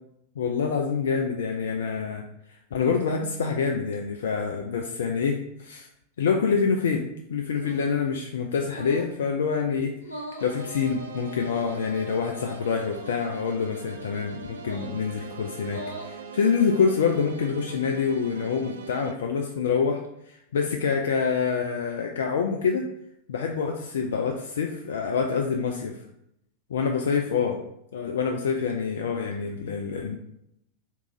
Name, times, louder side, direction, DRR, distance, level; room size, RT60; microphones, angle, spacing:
voice 1, 0.4-2.2 2.7-5.9 6.2-9.9 10.4-20.0 20.3-22.8 23.3-26.0 26.7-27.6 27.9-30.2, left 6 dB, 60° left, 2 dB, 0.3 m, -26 dB
sound 1, 7.5-8.0 8.7-9.1 10.0-10.5 11.5-12.0 12.8-13.2 14.6-15.0 15.6-16.1 16.8-17.4, equal, 80° left, 0.7 m, -41 dB
sound 2, 10.4-19.1, right 4 dB, 65° right, 0.4 m, -41 dB
3.6 x 2.3 x 2.9 m, 0.77 s
figure-of-eight pair, 90°, 0 cm